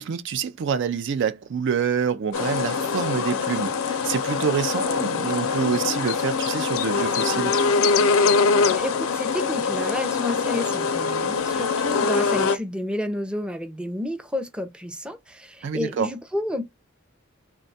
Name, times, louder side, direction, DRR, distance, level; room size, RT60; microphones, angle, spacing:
voice 1, 0.0-7.6 15.6-16.1, right 7 dB, 60° right, 0.4 m, -27 dB
sound 1, 2.3-12.6, left 5 dB, 90° left, 0.5 m, -23 dB
voice 2, 8.7-16.7, left 1 dB, 5° right, 0.5 m, -30 dB
3.5 x 2.2 x 3.9 m
head